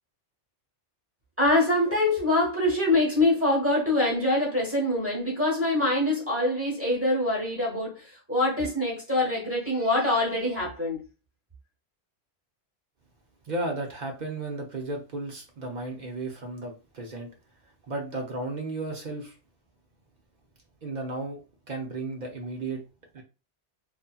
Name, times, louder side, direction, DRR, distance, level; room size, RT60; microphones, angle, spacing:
voice 1, 1.4-11.0, left 1 dB, 15° right, 1.0 m, -24 dB
voice 2, 13.4-17.3 17.8-19.4 20.8-21.4 21.7-22.8 23.1-23.2, right 2 dB, 50° right, 0.6 m, -34 dB
2.6 x 2.4 x 2.2 m
omnidirectional pair, 1.2 m